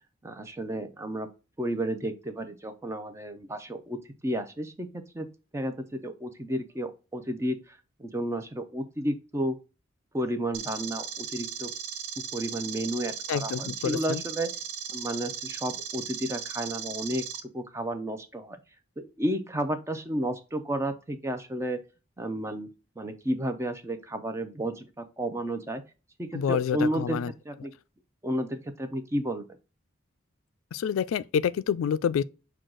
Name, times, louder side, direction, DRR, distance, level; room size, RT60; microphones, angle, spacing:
voice 1, 0.2-1.3 1.6-5.3 5.5-9.6 10.1-11.7 12.2-14.5 14.9-17.2 17.5-18.6 19.0-21.8 22.2-22.7 23.0-25.8 26.2-27.2 27.4-27.7 28.2-29.4, right 1 dB, 15° right, 0.5 m, -32 dB
sound 1, 10.5-17.4, right 8 dB, 90° right, 0.8 m, -37 dB
voice 2, 13.3-14.2 26.3-27.3 30.7-32.2, left 7 dB, 90° left, 0.3 m, -27 dB
6.2 x 2.3 x 3.7 m
head